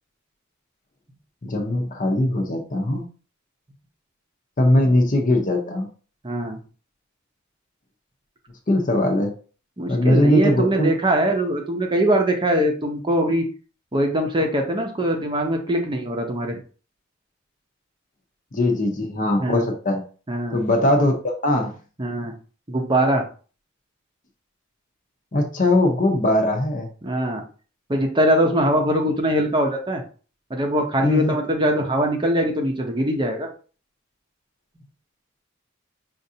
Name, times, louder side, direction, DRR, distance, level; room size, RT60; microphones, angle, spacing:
voice 1, 1.4-3.1 4.6-5.9 8.7-9.3 9.9-10.9 18.5-20.0 20.5-21.7 25.3-26.9 31.0-31.3, left 1 dB, 40° left, 4 dB, 0.7 m, -20 dB
voice 2, 6.2-6.6 9.8-13.5 13.9-16.6 19.4-19.6 20.3-20.6 22.0-22.3 22.7-23.2 27.0-27.4 27.9-30.0 30.5-33.5, right 1 dB, 25° right, 2 dB, 0.7 m, -22 dB
5.2 x 2.5 x 2.7 m, 0.38 s
head